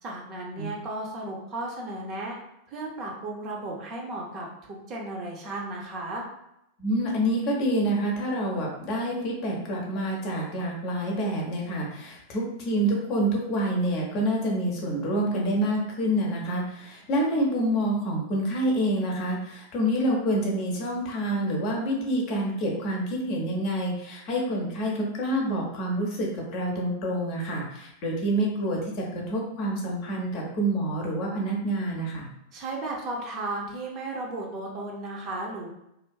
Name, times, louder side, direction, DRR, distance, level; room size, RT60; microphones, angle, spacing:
voice 1, 0.0-2.4 2.7-6.2 32.5-35.7, right 2 dB, 35° right, -1 dB, 0.6 m, -34 dB
voice 2, 6.8-32.3, right 1 dB, 40° left, -1 dB, 0.6 m, -27 dB
2.5 x 2.3 x 2.2 m, 0.82 s
figure-of-eight pair, 90°, 0 cm